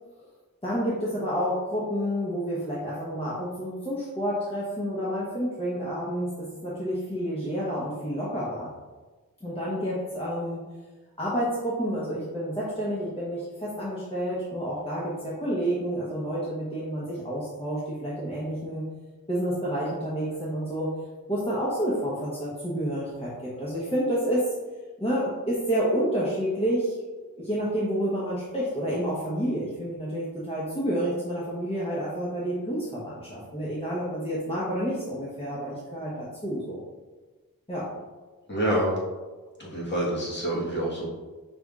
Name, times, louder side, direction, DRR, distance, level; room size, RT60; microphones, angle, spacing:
voice 1, 0.6-8.7 9.4-10.6 11.2-18.9 19.3-20.9 21.3-24.4 25.0-27.0 27.4-36.8 37.7-37.9, equal, 15° left, -8 dB, 0.9 m, -29 dB
voice 2, 38.5-39.0 39.6-41.1, right 1 dB, 30° left, -6 dB, 1.4 m, -27 dB
5.3 x 3.4 x 2.4 m, 1.3 s
wide cardioid pair, 70°, 35 cm